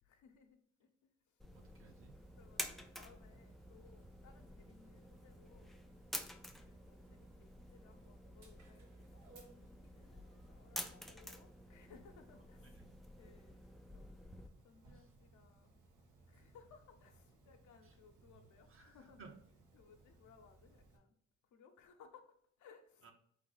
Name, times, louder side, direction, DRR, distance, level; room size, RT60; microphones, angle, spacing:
voice 1, 0.0-1.4 2.3-5.8 6.6-12.8 13.2-13.6 13.9-15.8 16.3-19.4 19.7-21.1 21.5-23.1, left 6 dB, 70° left, 5 dB, 0.9 m, -64 dB
sound 1, 1.4-14.5, left 1 dB, ahead, 0.4 m, -50 dB
voice 2, 1.5-2.2 12.6-13.0 14.9-15.1 17.8-18.3 18.7-19.3 23.0-23.1, right 4 dB, 45° right, 4 dB, 1.0 m, -60 dB
Dog, 1.5-21.0, right 2 dB, 80° right, 1.2 m, -66 dB
4.0 x 3.4 x 3.9 m, 0.66 s
cardioid pair, 90°, 30 cm